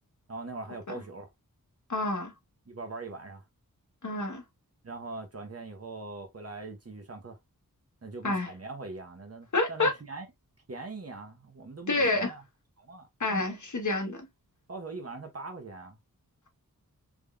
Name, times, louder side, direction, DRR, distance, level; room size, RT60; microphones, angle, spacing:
voice 1, 0.3-1.3 2.7-3.4 4.8-7.4 8.0-10.3 10.7-12.4 12.8-13.1 14.7-16.0, right 3 dB, 45° right, 1.0 m, -41 dB
voice 2, 1.9-2.3 4.0-4.4 8.2-8.5 9.5-9.9 11.9-12.3 13.2-14.2, left 2 dB, 55° left, 1.3 m, -28 dB
3.6 x 3.1 x 2.4 m
wide cardioid pair, 90°, 35 cm